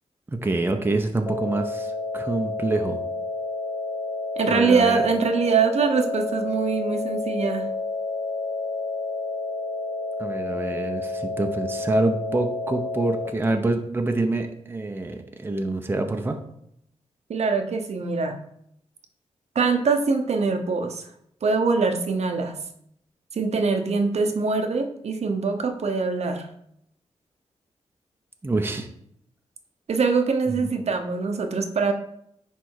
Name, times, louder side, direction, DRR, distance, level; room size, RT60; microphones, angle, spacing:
voice 1, 0.3-3.0 4.5-5.0 10.2-16.4 28.4-28.9 30.5-30.7, right 2 dB, 20° right, 5 dB, 0.8 m, -26 dB
sound 1, 1.3-13.3, left 3 dB, 30° left, 1.9 m, -30 dB
voice 2, 4.4-7.6 17.3-18.4 19.5-21.0 21.4-22.6 23.3-26.5 29.9-31.9, right 4 dB, 65° right, 5 dB, 0.9 m, -23 dB
10.0 x 3.4 x 4.8 m, 0.73 s
wide cardioid pair, 110°, 12 cm